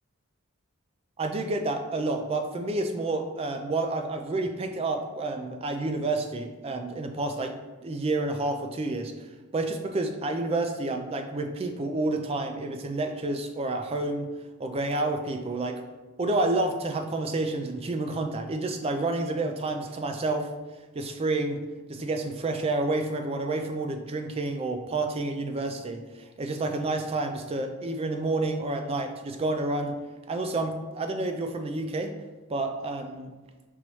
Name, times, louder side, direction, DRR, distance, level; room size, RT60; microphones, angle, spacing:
voice 1, 1.2-7.6 7.8-9.1 9.5-14.3 14.6-15.8 16.2-20.5 20.9-21.6 21.9-30.0 30.3-32.1 32.5-33.3, right 2 dB, 25° right, 5 dB, 0.3 m, -29 dB
5.3 x 3.0 x 3.0 m, 1.2 s
head